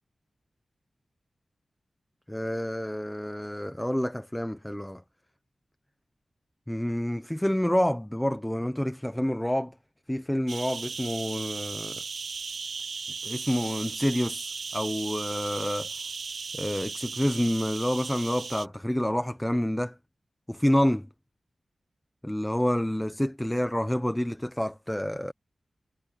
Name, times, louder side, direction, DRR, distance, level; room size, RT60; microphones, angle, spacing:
voice 1, 2.3-5.0 6.7-9.7 10.1-12.0 13.2-15.9 16.5-20.0 20.5-21.1 22.2-25.3, equal, 10° left, 0.9 m, -28 dB
sound 1, 10.5-18.7, right 5 dB, 75° right, 1.1 m, -36 dB
cardioid pair, 60°, 0 cm